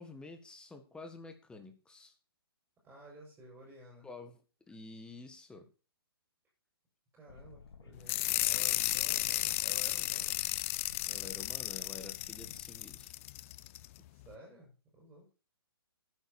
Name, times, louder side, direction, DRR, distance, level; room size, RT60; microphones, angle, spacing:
voice 1, 0.0-2.1 4.0-4.4 4.7-5.7 11.1-13.1, left 3 dB, 5° left, 7 dB, 1.7 m, -49 dB
voice 2, 2.8-4.1 7.1-10.4 14.1-15.3, right 1 dB, 15° right, -1 dB, 6.3 m, -53 dB
sound 1, 7.3-12.6, left 5 dB, 75° left, 2.1 m, -54 dB
sound 2, 8.1-13.9, left 17 dB, 30° left, 0.6 m, -34 dB
11.5 x 9.7 x 4.3 m, 0.34 s
hypercardioid pair, 135°, 13 cm